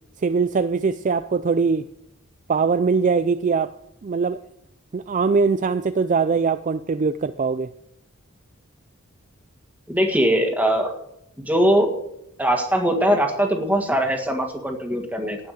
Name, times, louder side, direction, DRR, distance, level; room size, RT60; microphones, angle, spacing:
voice 1, 0.2-1.9 2.5-3.7 4.0-4.4 4.9-7.7, right 5 dB, 35° right, 12 dB, 0.4 m, -21 dB
voice 2, 9.9-10.9 11.4-11.9 12.4-15.4, equal, 10° right, 3 dB, 1.8 m, -21 dB
18.0 x 5.9 x 7.7 m, 0.79 s
head